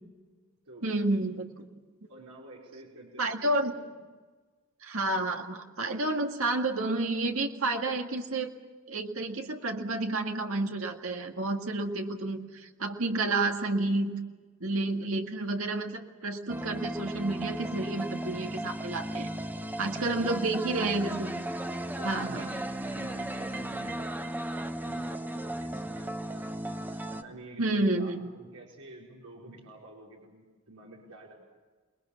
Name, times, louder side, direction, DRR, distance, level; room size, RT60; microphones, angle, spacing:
voice 1, 0.8-1.6 3.2-3.7 4.8-8.5 8.9-14.2 14.6-19.3 19.8-21.3 22.0-22.5 27.6-28.2, right 2 dB, 65° right, 3 dB, 2.0 m, -30 dB
voice 2, 2.1-3.3 3.6-3.9 19.3-19.5 19.8-20.2 21.5-22.5 22.9-24.5 24.8-26.7 27.1-31.3, right 2 dB, 90° right, -3 dB, 5.0 m, -50 dB
sound 1, 16.5-27.2, right 1 dB, 10° right, 1.1 m, -35 dB
28.0 x 21.5 x 7.3 m, 1.4 s
head